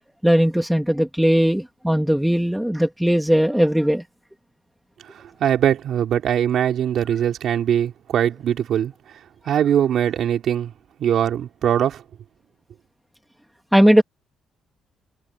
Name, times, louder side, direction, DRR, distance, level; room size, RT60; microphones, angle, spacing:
voice 1, 0.2-4.0 13.7-14.0, equal, 5° right, 2.4 m, -18 dB
voice 2, 5.1-8.9 9.5-10.7 11.0-12.0, right 9 dB, 70° right, 3.6 m, -21 dB
cardioid pair, 90°, 0 cm